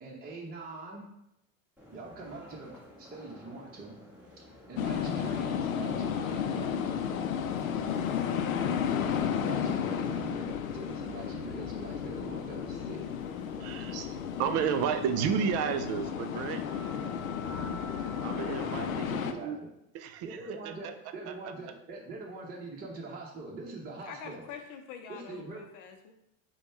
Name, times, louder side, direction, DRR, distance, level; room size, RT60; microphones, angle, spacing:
voice 1, 0.0-1.0 1.9-2.7 3.0-3.9 4.4-6.7 9.4-13.0 17.4-17.8 18.7-19.7 20.2-24.5 25.1-25.7, right 3 dB, 25° right, -3 dB, 1.0 m, -43 dB
sound 1, 1.8-18.9, left 2 dB, 5° right, 1.4 m, -53 dB
sound 2, 4.8-19.3, left 8 dB, 90° left, 0.5 m, -33 dB
voice 2, 13.6-16.6 18.2-19.6 19.9-20.4 20.6-20.9 21.3-21.4, right 8 dB, 40° right, 9 dB, 0.5 m, -32 dB
voice 3, 24.0-26.1, left 7 dB, 50° left, 5 dB, 0.7 m, -45 dB
5.1 x 2.3 x 4.3 m, 0.83 s
hypercardioid pair, 90°, 40 cm